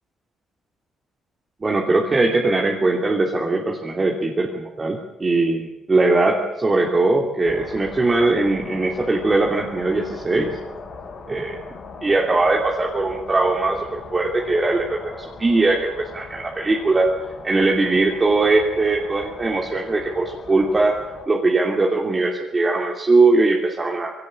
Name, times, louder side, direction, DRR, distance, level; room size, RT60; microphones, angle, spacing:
voice 1, 1.6-10.6 11.3-11.6 12.0-17.1 17.4-21.0 21.3-24.1, right 2 dB, 25° right, -1 dB, 3.0 m, -20 dB
sound 1, 7.4-21.3, left 4 dB, 55° left, 5.7 m, -39 dB
21.0 x 17.5 x 8.6 m, 0.98 s
cardioid pair, 90°, 0 cm